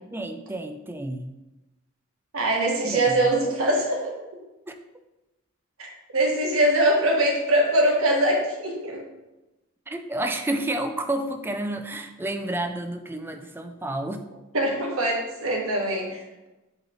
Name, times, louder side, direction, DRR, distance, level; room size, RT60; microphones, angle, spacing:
voice 1, 0.1-1.3 2.8-3.3 4.7-4.8 9.9-14.3, right 1 dB, 10° right, 6 dB, 0.4 m, -30 dB
voice 2, 2.3-4.2 5.8-9.0 14.5-16.5, right 1 dB, 80° right, -1 dB, 1.4 m, -23 dB
7.7 x 3.1 x 4.0 m, 1.0 s
head